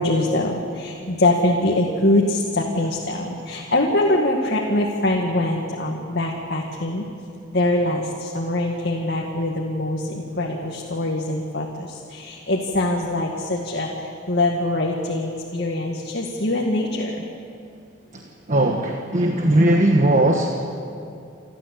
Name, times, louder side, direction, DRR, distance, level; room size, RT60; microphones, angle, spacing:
voice 1, 0.0-7.0 7.5-17.2, left 1 dB, 55° left, -1 dB, 2.0 m, -23 dB
voice 2, 18.5-20.6, right 1 dB, 40° right, 2 dB, 1.4 m, -18 dB
29.0 x 13.5 x 8.4 m, 2.6 s
head